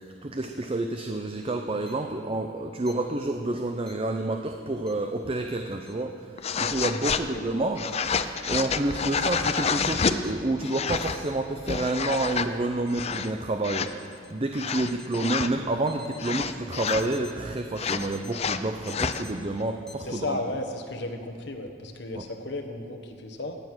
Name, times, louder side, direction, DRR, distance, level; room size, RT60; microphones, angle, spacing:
voice 1, 0.2-6.3 6.6-7.9 8.1-20.4 22.1-22.2, right 2 dB, 30° right, 5 dB, 0.6 m, -29 dB
sound 1, 1.9-2.0 2.9-3.0 3.9-4.0 4.9-5.0 5.9-6.0 6.9-7.0 7.9-8.0 8.9-9.0 9.9-10.3 10.9-11.3 11.9-12.3 12.9-13.3 13.9-14.3 14.9-15.3 15.9-16.3 16.9-17.3 17.9-18.3 18.9-19.3 19.9-20.0, left 2 dB, 5° left, 1.1 m, -48 dB
sound 2, 6.4-7.2 7.8-10.2 10.6-11.2 11.6-12.5 12.9-13.3 13.6-13.9 14.5-15.5 16.2-17.1 17.8-19.2, left 6 dB, 35° left, 0.5 m, -28 dB
voice 2, 7.1-7.5 20.0-23.6, left 2 dB, 65° left, 5 dB, 1.3 m, -34 dB
17.0 x 9.5 x 6.2 m, 2.3 s
head